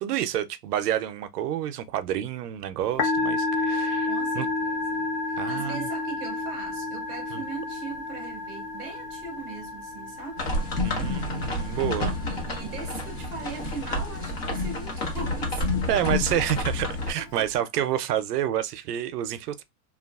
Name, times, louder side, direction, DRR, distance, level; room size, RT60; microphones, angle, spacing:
voice 1, 0.0-4.5 5.4-5.9 7.3-7.4 10.8-12.2 15.9-19.6, right 11 dB, 70° right, 0.6 m, -29 dB
Musical instrument, 2.8-17.6, left 3 dB, 70° left, 1.0 m, -32 dB
voice 2, 4.1-10.4 12.2-16.4 17.2-17.8, right 4 dB, 5° left, 0.4 m, -40 dB
sound 1, 10.4-17.1, left 2 dB, 40° left, 0.9 m, -29 dB
3.0 x 2.3 x 2.3 m
supercardioid pair, 175°, 49 cm